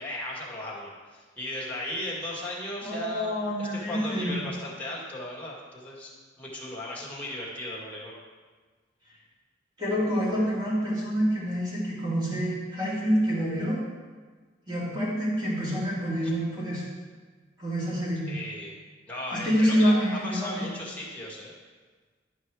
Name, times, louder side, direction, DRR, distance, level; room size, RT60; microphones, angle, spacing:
voice 1, 0.0-6.1 6.4-8.2 18.3-18.7 19.1-20.0 20.2-21.5, left 1 dB, 10° left, -6 dB, 1.9 m, -36 dB
voice 2, 2.8-4.4 9.8-13.8 14.7-16.8 17.6-18.3 19.3-20.7, equal, 20° right, -8 dB, 3.0 m, -27 dB
11.5 x 5.4 x 4.8 m, 1.4 s
head